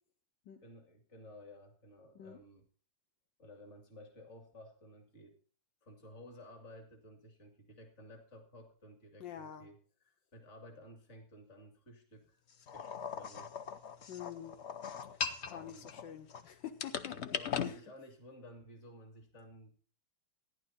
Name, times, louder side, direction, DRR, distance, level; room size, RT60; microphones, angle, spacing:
voice 1, 0.6-2.7 3.4-5.4 5.8-9.8 10.0-13.5 15.5-15.9 17.1-19.8, left 1 dB, 40° left, 4 dB, 2.5 m, -55 dB
voice 2, 9.2-9.7 14.1-14.5 15.1-17.8, left 10 dB, 80° left, 7 dB, 1.7 m, -47 dB
sound 1, 12.7-16.4 16.8-17.7, left 7 dB, 60° left, 0.7 m, -39 dB
14.5 x 10.5 x 4.1 m, 0.42 s
omnidirectional pair, 2.0 m